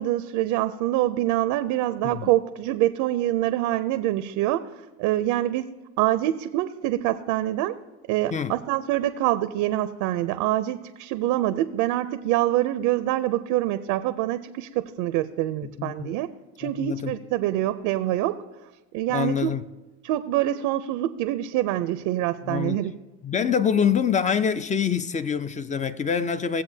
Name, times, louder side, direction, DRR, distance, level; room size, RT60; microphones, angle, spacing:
voice 1, 0.0-4.7 5.0-5.7 6.0-7.8 8.1-16.3 16.6-18.4 18.9-19.5 20.0-22.9, right 14 dB, 75° right, 0.5 m, -25 dB
voice 2, 15.6-16.2 16.6-17.2 19.1-19.6 22.5-22.9 23.2-26.6, left 7 dB, 25° left, 0.4 m, -25 dB
17.5 x 7.7 x 2.7 m
supercardioid pair, 100°, 32 cm